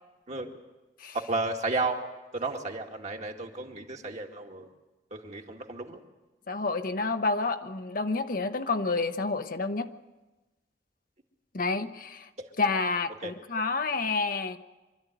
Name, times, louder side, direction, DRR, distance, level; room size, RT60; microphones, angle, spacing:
voice 1, 1.1-2.1 2.3-4.7 5.1-6.0 13.2-13.3, right 3 dB, 40° right, 2 dB, 2.1 m, -33 dB
voice 2, 6.5-9.9 11.5-12.3 12.6-14.6, left 3 dB, 50° left, 8 dB, 1.0 m, -29 dB
25.0 x 13.0 x 9.2 m, 1.1 s
head